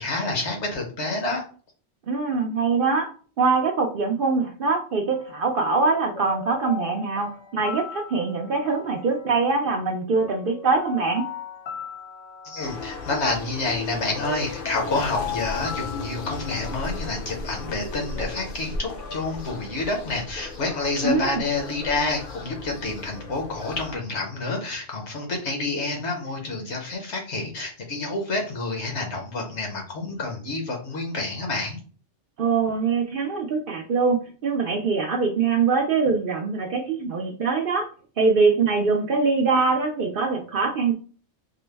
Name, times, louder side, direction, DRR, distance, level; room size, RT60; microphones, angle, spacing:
voice 1, 0.0-1.4 12.4-31.8, left 3 dB, 70° left, 1 dB, 1.2 m, -28 dB
voice 2, 2.1-3.1 3.4-11.3 21.0-21.4 32.4-37.9 38.2-40.9, right 4 dB, 60° right, 3 dB, 0.6 m, -23 dB
sound 1, 5.1-18.4, left 6 dB, 90° left, 0.9 m, -38 dB
sound 2, 12.6-24.0, left 3 dB, 55° left, 0.7 m, -36 dB
3.8 x 2.0 x 3.3 m, 0.40 s
omnidirectional pair, 1.2 m